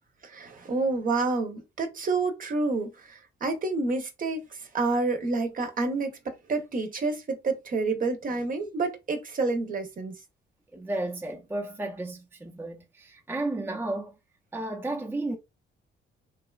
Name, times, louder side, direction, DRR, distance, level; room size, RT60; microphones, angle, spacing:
voice 1, 0.2-4.4 4.7-10.2, right 3 dB, 45° right, 0.7 m, -29 dB
voice 2, 10.7-14.2 14.5-15.4, right 2 dB, 10° right, 0.5 m, -33 dB
2.9 x 2.2 x 2.3 m
cardioid pair, 90°, 20 cm